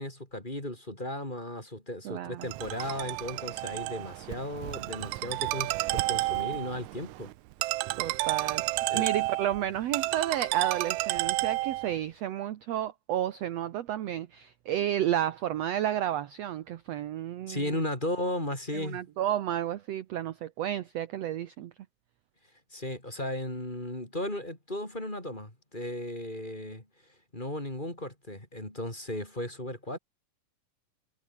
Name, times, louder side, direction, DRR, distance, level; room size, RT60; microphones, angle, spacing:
voice 1, 0.0-7.3 7.9-8.1 8.9-9.1 17.5-19.0 22.7-26.8 27.3-30.0, left 1 dB, 15° left, 4.7 m, -35 dB
voice 2, 2.1-2.5 8.0-17.6 18.7-21.7, right 11 dB, 65° right, 1.8 m, -31 dB
Ringtone, 2.4-12.0, right 20 dB, 85° right, 1.6 m, -31 dB
omnidirectional pair, 3.9 m